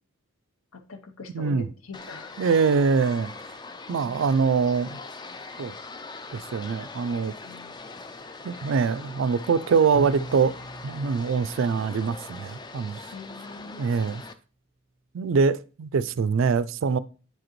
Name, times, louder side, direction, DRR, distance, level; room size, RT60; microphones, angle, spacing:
voice 1, 0.7-2.4 3.9-4.2 7.4-7.7 13.1-14.0, left 3 dB, 75° left, 0.9 m, -42 dB
voice 2, 1.3-1.7 2.4-3.3 3.9-5.0 5.6-5.7 6.3-7.3 8.4-10.5 10.8-13.0 13.8-14.2 15.1-17.0, right 5 dB, 60° right, 0.3 m, -24 dB
sound 1, 1.9-14.3, left 3 dB, 20° left, 0.3 m, -42 dB
Bowed string instrument, 9.9-12.8, right 1 dB, 15° right, 0.6 m, -39 dB
9.1 x 4.9 x 3.0 m
head